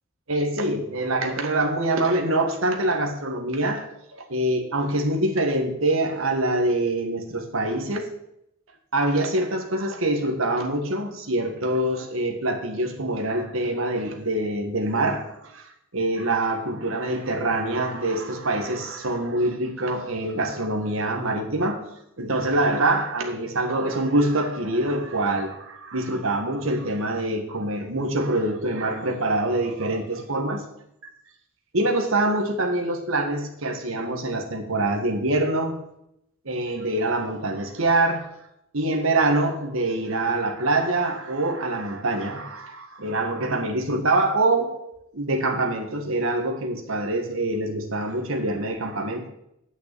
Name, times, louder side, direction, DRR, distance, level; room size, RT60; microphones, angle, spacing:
voice 1, 0.3-8.1 8.9-21.9 22.2-30.7 31.0-31.1 31.7-35.8 36.4-38.3 38.7-44.8 45.1-49.3, right 2 dB, 75° right, 1.7 m, -25 dB
9.4 x 6.0 x 8.4 m
head